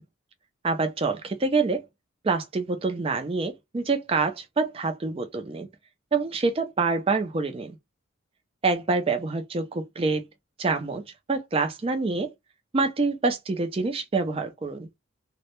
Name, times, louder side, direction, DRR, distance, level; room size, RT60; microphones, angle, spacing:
voice 1, 0.6-1.8 2.2-5.7 6.1-7.8 8.6-10.2 10.6-11.0 11.3-12.3 12.7-14.9, right 3 dB, 25° right, 0.4 m, -26 dB
2.1 x 2.0 x 2.9 m
head